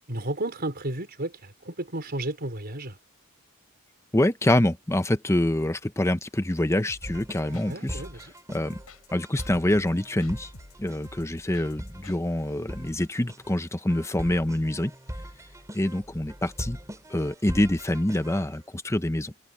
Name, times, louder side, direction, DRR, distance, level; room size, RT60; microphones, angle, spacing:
voice 1, 0.1-3.0 7.5-8.3, right 1 dB, 50° right, 5.1 m, -33 dB
voice 2, 4.1-8.0 8.5-8.8 9.1-10.5 10.8-14.9 15.7-16.8 17.1-19.3, left 1 dB, 15° left, 0.9 m, -26 dB
sound 1, 6.9-12.2, left 2 dB, 85° left, 6.6 m, -49 dB
sound 2, 7.0-18.5, equal, 15° right, 3.9 m, -41 dB
head